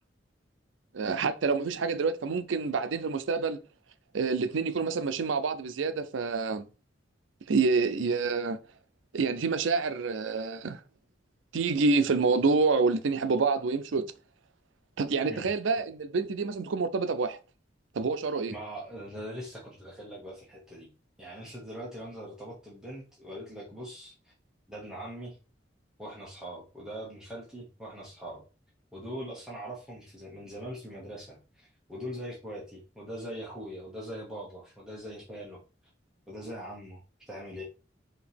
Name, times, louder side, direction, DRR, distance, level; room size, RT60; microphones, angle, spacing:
voice 1, 0.9-3.6 4.1-6.6 7.5-8.6 9.1-10.8 11.5-14.1 15.0-17.4 17.9-18.5, right 4 dB, 85° right, 0.5 m, -27 dB
voice 2, 18.5-20.9 21.2-24.3 24.7-25.4 26.0-28.4 28.9-35.6 36.3-37.0 37.3-37.6, equal, 5° right, 0.9 m, -41 dB
5.0 x 2.8 x 3.4 m
head